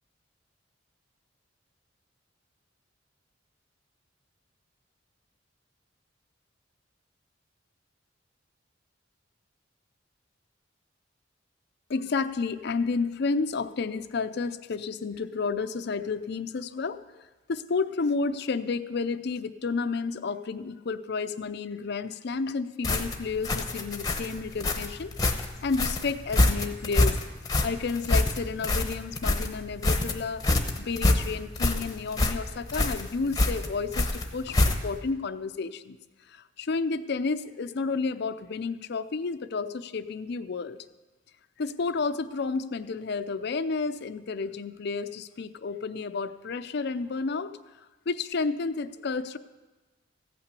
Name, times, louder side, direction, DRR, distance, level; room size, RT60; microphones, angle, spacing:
voice 1, 11.9-25.1 25.6-27.2 27.6-30.4 30.8-36.0 36.3-40.8 41.6-47.6 48.1-49.4, left 4 dB, 60° left, 13 dB, 0.5 m, -31 dB
sound 1, 22.8-35.1, left 2 dB, 20° left, 0.9 m, -26 dB
15.0 x 5.9 x 8.2 m, 1.2 s
head